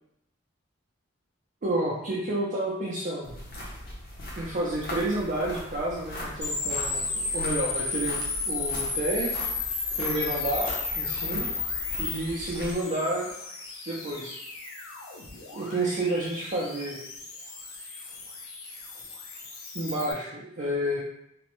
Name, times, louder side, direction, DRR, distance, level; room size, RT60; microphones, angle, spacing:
voice 1, 1.6-3.4 4.4-8.2 8.5-9.4 10.0-11.5 12.0-13.3 13.9-14.4 15.5-17.0 19.7-21.0, right 1 dB, 40° right, -5 dB, 0.4 m, -30 dB
sound 1, 3.2-12.8, left 1 dB, 45° left, 0.6 m, -40 dB
sound 2, 6.4-20.1, left 4 dB, 85° left, 0.6 m, -34 dB
3.2 x 2.0 x 2.9 m, 0.79 s
head